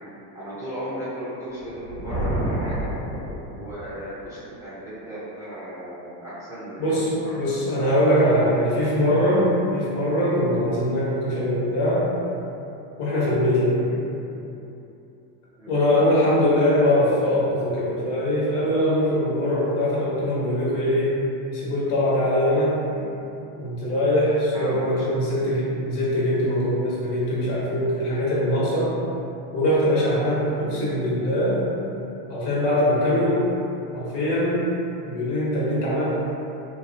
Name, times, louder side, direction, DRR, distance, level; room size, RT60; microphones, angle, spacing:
voice 1, 0.3-2.9 3.5-7.6 8.7-9.1 13.8-14.0 15.6-16.0 22.9-23.1 24.5-25.1 30.6-30.9, right 1 dB, 5° right, -13 dB, 0.4 m, -36 dB
Thunder, 1.7-4.0, right 1 dB, 30° left, 0.8 m, -29 dB
voice 2, 6.8-12.1 13.0-13.8 15.7-21.2 21.5-22.8 23.5-29.0 29.5-31.6 32.3-33.5 33.9-34.7 35.1-36.1, left 1 dB, 75° left, -7 dB, 1.0 m, -22 dB
2.7 x 2.0 x 2.5 m, 2.8 s
supercardioid pair, 125°, 48 cm